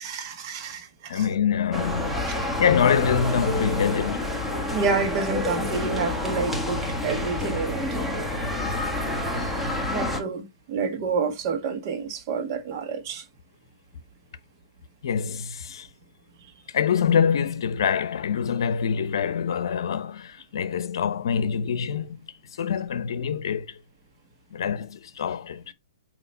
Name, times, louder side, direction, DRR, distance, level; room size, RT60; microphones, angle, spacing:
voice 1, 0.0-1.2 4.7-7.8 9.9-13.2, right 5 dB, 45° right, 1.4 m, -29 dB
voice 2, 1.1-2.1 2.6-4.4 15.0-15.9 16.7-22.2 22.6-23.8 24.5-25.7, left 7 dB, 65° left, 0.7 m, -25 dB
sound 1, 1.7-10.2, left 1 dB, ahead, 1.3 m, -28 dB
8.4 x 3.0 x 4.2 m
hypercardioid pair, 130°, 3 cm